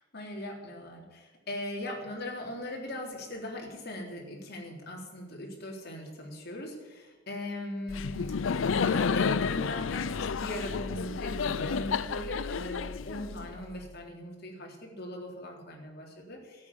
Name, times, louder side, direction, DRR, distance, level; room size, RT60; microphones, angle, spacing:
voice 1, 0.1-16.7, left 1 dB, 55° left, 0 dB, 3.7 m, -39 dB
Laughter, 7.9-13.7, left 5 dB, 85° left, 0.5 m, -30 dB
13.5 x 8.8 x 9.8 m, 1.2 s
head